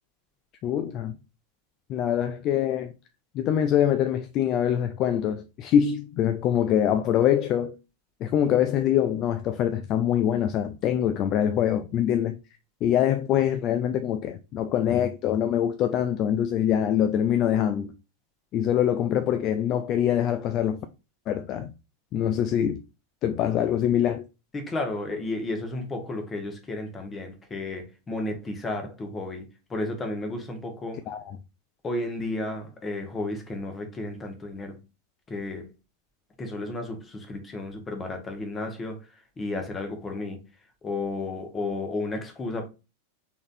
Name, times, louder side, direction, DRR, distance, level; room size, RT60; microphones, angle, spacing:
voice 1, 0.6-1.2 1.9-2.9 3.3-7.8 8.2-12.4 12.8-17.9 18.5-20.8 21.3-21.7 22.1-22.8 23.2-24.2 31.1-31.2, left 10 dB, 35° left, 0.3 m, -24 dB
voice 2, 24.5-31.0 31.8-34.8 35.3-35.7 36.4-39.0 39.4-40.4 40.8-42.7, left 2 dB, 20° left, 1.2 m, -33 dB
3.9 x 3.8 x 2.5 m
figure-of-eight pair, 90°, 0 cm